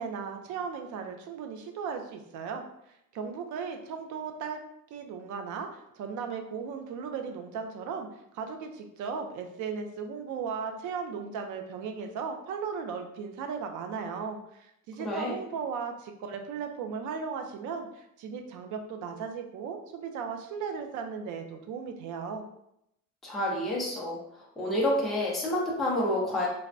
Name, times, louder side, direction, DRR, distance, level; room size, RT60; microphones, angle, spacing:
voice 1, 0.0-4.6 4.9-22.4, right 6 dB, 65° right, 5 dB, 0.5 m, -36 dB
voice 2, 15.0-15.4 23.2-24.2 24.6-26.5, left 1 dB, ahead, -5 dB, 0.5 m, -28 dB
3.3 x 2.1 x 2.5 m, 0.78 s
cardioid pair, 160°, 34 cm